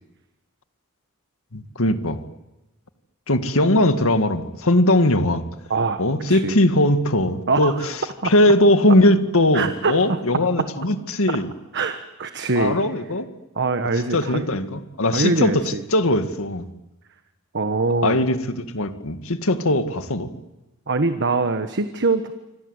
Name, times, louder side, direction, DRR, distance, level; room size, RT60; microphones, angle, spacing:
voice 1, 1.5-2.2 3.3-5.5 6.0-7.9 8.2-11.5 12.5-13.3 14.1-16.7 18.0-20.3, left 1 dB, 70° left, 9 dB, 2.0 m, -20 dB
voice 2, 5.7-6.0 6.3-6.5 7.5-7.9 8.2-8.3 9.5-10.2 11.3-11.4 11.7-12.8 13.5-14.5 15.1-15.8 17.5-18.2 20.9-22.3, right 3 dB, 55° right, 8 dB, 1.3 m, -23 dB
26.0 x 26.0 x 8.2 m, 1.0 s
head